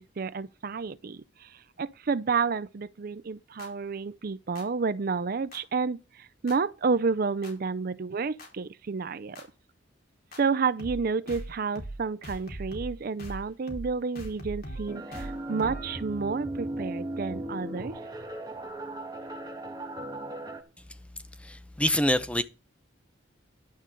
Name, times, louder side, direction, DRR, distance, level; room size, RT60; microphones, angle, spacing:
voice 1, 0.0-9.4 10.4-18.0, right 5 dB, 50° right, 0.5 m, -30 dB
sound 1, 3.6-3.7 4.5-4.6 5.5-5.6 6.5-6.6 7.4-7.5 8.4-8.5 9.3-9.4 10.3-10.4 10.8-11.0 11.3-11.5 11.7-12.0 12.2-12.9 13.2-13.4 13.7-13.9 14.1-16.0, right 1 dB, 50° left, 4.2 m, -40 dB
sound 2, 14.9-20.6, right 1 dB, 20° right, 1.6 m, -37 dB
voice 2, 21.4-22.4, left 1 dB, 5° left, 0.9 m, -25 dB
11.5 x 5.2 x 7.6 m
head